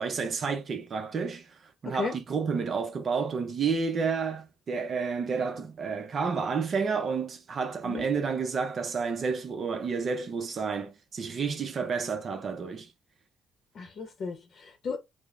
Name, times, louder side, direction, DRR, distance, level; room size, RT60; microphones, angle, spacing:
voice 1, 0.0-1.5 1.8-12.9, right 5 dB, 50° right, 0.5 m, -30 dB
voice 2, 1.8-2.1 7.8-8.1 13.7-15.0, left 4 dB, 55° left, 0.7 m, -35 dB
4.9 x 2.0 x 2.4 m
cardioid pair, 90°, 0 cm